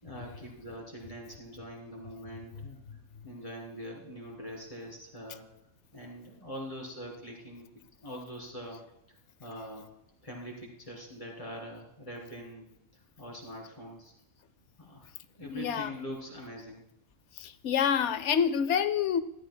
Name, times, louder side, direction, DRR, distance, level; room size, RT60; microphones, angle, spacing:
voice 1, 0.0-2.8 3.2-5.5 5.9-7.7 8.0-8.8 9.1-9.9 10.2-12.7 12.9-14.1 14.8-15.1 15.3-16.8, equal, 25° left, -2 dB, 3.2 m, -43 dB
voice 2, 15.4-15.9 17.4-19.2, left 8 dB, 70° left, 14 dB, 0.9 m, -28 dB
13.5 x 12.5 x 2.2 m, 0.82 s
omnidirectional pair, 1.3 m